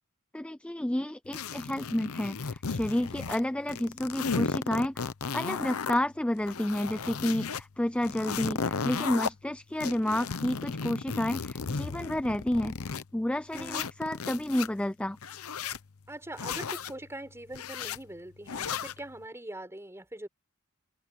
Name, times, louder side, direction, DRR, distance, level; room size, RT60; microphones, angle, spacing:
voice 1, 0.3-15.2, left 1 dB, 5° left, 0.3 m, -30 dB
sound 1, 1.3-3.4 3.7-6.0 6.4-7.6 8.0-9.3 9.8-13.0 13.5-14.7 15.2-15.8 16.4-16.9 17.5-18.0 18.5-19.0, left 5 dB, 70° left, 0.8 m, -34 dB
voice 2, 13.5-13.9 16.1-20.3, right 1 dB, 10° right, 6.2 m, -42 dB
head